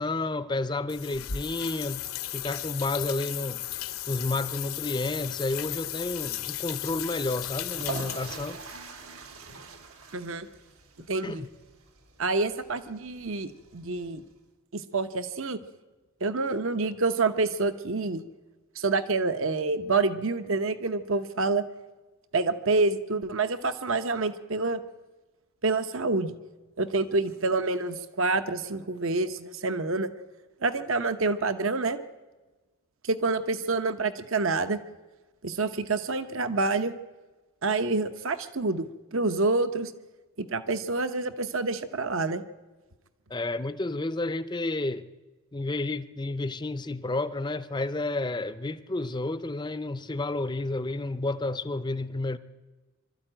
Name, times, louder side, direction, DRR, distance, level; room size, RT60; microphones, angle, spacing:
voice 1, 0.0-2.1 2.3-3.6 4.1-8.6 11.2-11.5 43.3-45.1 45.5-52.4, left 2 dB, 20° left, 0.6 m, -31 dB
sound 1, 0.9-8.7, left 12 dB, 70° left, 0.9 m, -35 dB
sound 2, 7.6-14.3, right 5 dB, 80° right, 2.1 m, -44 dB
voice 2, 10.1-10.5 11.1-11.4 12.2-14.2 14.7-15.6 16.2-18.2 18.8-21.6 22.3-24.8 25.6-26.3 26.8-30.1 30.6-32.0 33.0-34.8 35.4-36.9 37.6-38.9 39.1-39.9 40.4-42.4, right 3 dB, 60° right, 0.9 m, -27 dB
24.5 x 13.0 x 8.9 m
head